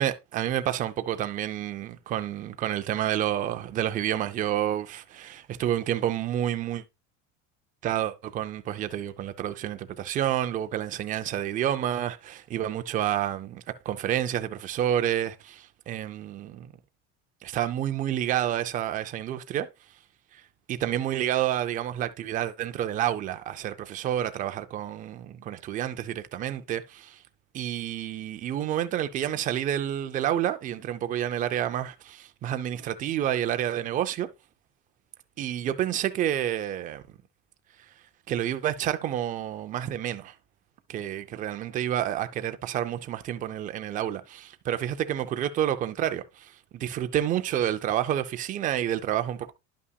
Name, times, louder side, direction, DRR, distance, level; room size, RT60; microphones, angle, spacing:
voice 1, 0.0-6.8 7.8-16.7 17.4-19.7 20.3-20.4 20.7-27.2 27.5-34.3 35.4-37.0 38.3-40.3 40.9-49.5, right 11 dB, 25° right, 0.4 m, -29 dB
11.0 x 5.6 x 2.2 m
cardioid pair, 160°, 35 cm